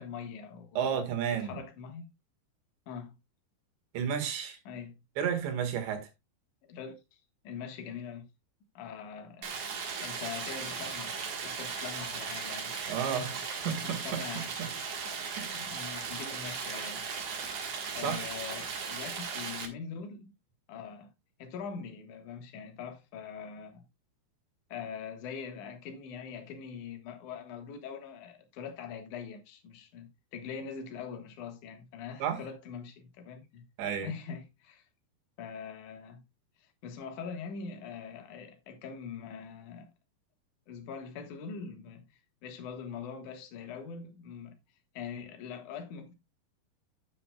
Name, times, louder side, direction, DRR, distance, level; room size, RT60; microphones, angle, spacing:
voice 1, 0.0-1.0 1.3-2.1 2.9-3.1 4.7-4.9 6.7-7.0 7.4-8.2 8.7-9.5 10.0-12.7 13.3-14.9 15.3-17.1 17.9-20.3 20.7-21.1 21.4-23.9 24.7-33.6 34.0-34.8 35.4-36.2 36.6-39.9 40.7-44.6 44.9-46.1, left 6 dB, 55° left, 2.5 m, -43 dB
voice 2, 0.8-1.6 3.9-4.6 5.2-6.1 12.9-14.7 15.4-15.6 18.0-18.3 32.2-32.4 33.8-34.1, right 8 dB, 80° right, 4.0 m, -32 dB
Stream, 9.4-19.6, right 5 dB, 55° right, 1.8 m, -37 dB
9.7 x 9.0 x 2.3 m
omnidirectional pair, 5.0 m